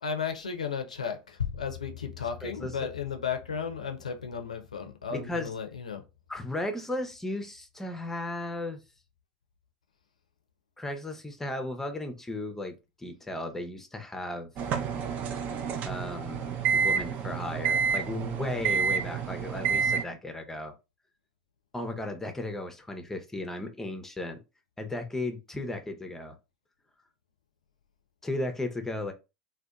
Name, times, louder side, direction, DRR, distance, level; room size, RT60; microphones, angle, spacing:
voice 1, 0.0-6.0, left 6 dB, 85° left, 0.5 m, -34 dB
voice 2, 2.2-2.9 5.1-5.5 6.3-8.8 10.8-14.5 15.8-20.7 21.7-24.4 24.8-26.3 28.2-29.1, left 2 dB, 10° left, 0.5 m, -35 dB
sound 1, 14.6-20.0, right 6 dB, 45° right, 0.4 m, -29 dB
2.7 x 2.1 x 2.3 m
figure-of-eight pair, 80°, 4 cm